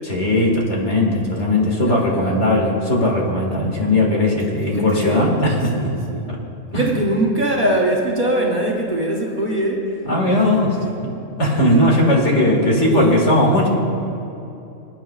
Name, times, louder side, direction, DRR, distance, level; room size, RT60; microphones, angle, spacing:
voice 1, 0.0-5.9 6.7-6.8 10.1-10.7 11.0-11.1 11.4-13.7, left 1 dB, 60° left, -2 dB, 2.2 m, -18 dB
voice 2, 1.8-2.4 4.7-5.3 5.7-6.3 6.7-9.9 10.3-10.7 11.7-11.9 12.1-13.2, right 1 dB, 40° right, -2 dB, 1.3 m, -22 dB
26.5 x 9.2 x 2.4 m, 2.9 s
omnidirectional pair, 1.4 m